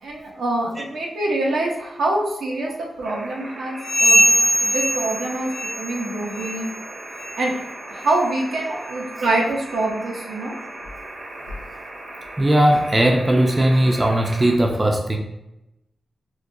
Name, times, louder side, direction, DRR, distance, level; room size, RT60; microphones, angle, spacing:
voice 1, 0.0-4.3 4.6-6.7 7.4-7.5 7.9-10.5, right 2 dB, 90° right, -2 dB, 0.7 m, -25 dB
sound 1, 3.0-14.5, right 1 dB, 50° right, 0.8 m, -38 dB
sound 2, 3.8-6.0 6.3-6.7 7.1-7.4 8.0-8.1 8.8-8.9 9.7-9.8, right 1 dB, 40° left, 0.5 m, -20 dB
voice 2, 12.4-15.2, right 1 dB, 25° right, 2 dB, 0.4 m, -18 dB
4.6 x 2.1 x 2.6 m, 0.88 s
cardioid pair, 90°, 0 cm